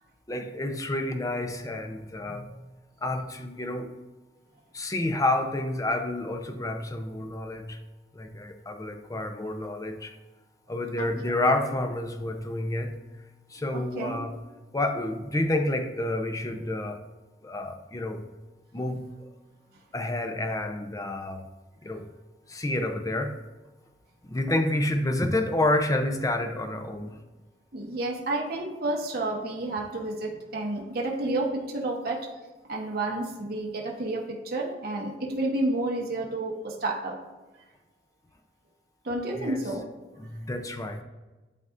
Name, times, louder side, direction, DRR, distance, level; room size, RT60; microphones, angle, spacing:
voice 1, 0.3-2.7 3.0-3.9 4.7-7.8 8.1-10.1 10.7-13.0 13.5-14.4 14.7-17.0 17.4-18.2 18.7-19.1 19.9-21.4 21.8-22.0 22.5-23.4 24.3-27.2 39.3-39.6 40.2-41.0, left 1 dB, 20° left, 6 dB, 0.6 m, -29 dB
voice 2, 13.7-14.2 27.7-32.3 32.7-37.2 39.0-39.8, right 2 dB, 60° right, -2 dB, 1.2 m, -30 dB
11.0 x 4.0 x 2.5 m, 1.2 s
head